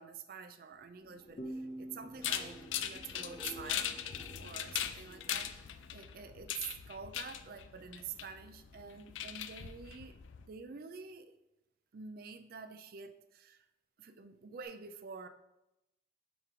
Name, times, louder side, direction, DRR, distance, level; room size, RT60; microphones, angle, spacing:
voice 1, 0.0-4.0 4.4-5.7 5.9-11.3 11.9-13.7 14.0-15.3, right 6 dB, 50° right, 10 dB, 0.4 m, -48 dB
sound 1, 0.9-6.7 7.0-7.6 14.6-14.7, equal, 20° right, 1.2 m, -55 dB
sound 2, 1.4-4.8, right 1 dB, 30° left, 0.5 m, -48 dB
sound 3, 2.2-10.5, left 10 dB, 80° left, 0.4 m, -40 dB
5.2 x 4.5 x 4.7 m, 0.91 s
head